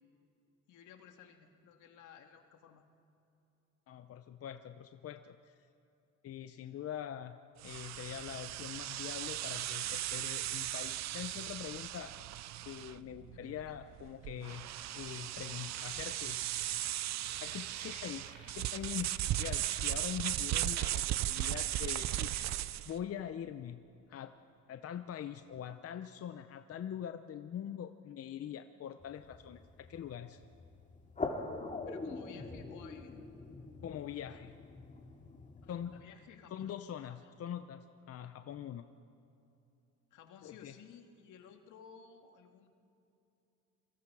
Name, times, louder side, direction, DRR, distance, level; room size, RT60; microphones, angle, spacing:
voice 1, 0.7-2.8 13.2-13.5 31.9-33.2 35.6-36.7 37.1-37.3 40.1-42.7, left 7 dB, 80° left, 5 dB, 2.0 m, -56 dB
voice 2, 3.9-5.7 6.2-7.4 7.6-12.1 12.7-14.6 14.9-16.4 17.4-22.3 22.9-23.8 24.1-24.3 24.7-30.4 33.8-34.5 35.7-36.1 36.5-38.9 40.4-40.7, left 9 dB, 50° left, 9 dB, 0.7 m, -43 dB
sound 1, 7.6-23.0, right 14 dB, 65° right, 0.6 m, -37 dB
sound 2, 13.5-13.6 14.2-22.7, right 3 dB, 90° right, 4.6 m, -54 dB
sound 3, 29.0-36.0, left 3 dB, 25° left, 2.4 m, -44 dB
26.5 x 24.0 x 4.9 m, 2.8 s
cardioid pair, 105°, 30 cm